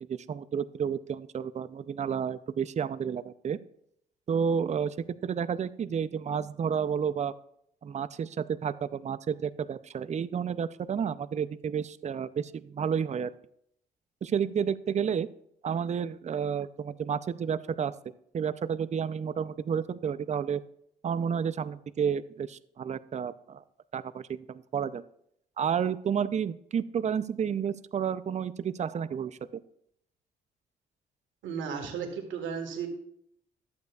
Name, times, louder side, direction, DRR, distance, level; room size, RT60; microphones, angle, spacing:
voice 1, 0.1-3.6 4.3-5.0 5.2-7.3 7.8-13.3 14.2-15.3 15.6-17.9 18.3-20.6 21.0-23.6 23.9-25.0 25.6-29.6, right 7 dB, 35° right, 15 dB, 0.5 m, -31 dB
voice 2, 31.4-32.9, right 6 dB, 75° right, 3 dB, 1.6 m, -34 dB
11.5 x 8.2 x 2.4 m, 0.71 s
supercardioid pair, 55°, 20 cm